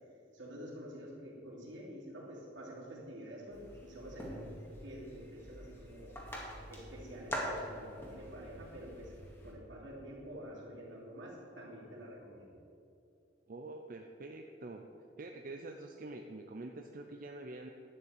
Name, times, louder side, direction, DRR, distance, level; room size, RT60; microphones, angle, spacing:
voice 1, 0.3-4.6 4.8-6.2 6.7-9.1 9.4-12.6, equal, 75° right, -3 dB, 3.1 m, -48 dB
sound 1, 3.5-9.5, equal, 15° left, 2.2 m, -44 dB
voice 2, 13.5-14.8 15.2-17.7, right 2 dB, 50° right, 3 dB, 0.6 m, -46 dB
11.5 x 5.8 x 9.1 m, 2.6 s
head